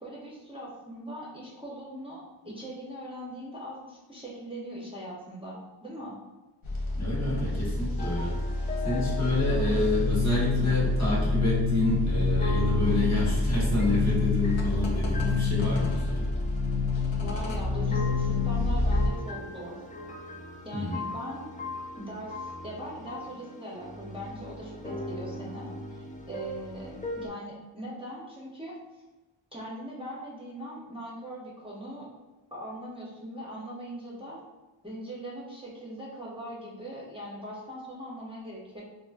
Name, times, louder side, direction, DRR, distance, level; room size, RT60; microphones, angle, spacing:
voice 1, 0.0-6.1 9.5-9.9 10.6-10.8 17.2-19.8 20.6-21.5 22.0-28.8 29.5-32.1 32.5-34.4 34.8-38.8, equal, 10° right, -6 dB, 0.7 m, -40 dB
sound 1, 6.6-19.1, left 3 dB, 85° left, 0.6 m, -27 dB
voice 2, 7.0-8.3 8.8-16.3 20.7-21.0, left 1 dB, 35° left, -6 dB, 1.2 m, -28 dB
sound 2, 8.0-27.3, left 1 dB, 20° left, 0.3 m, -40 dB
3.7 x 2.4 x 2.4 m, 1.1 s
wide cardioid pair, 60°, 47 cm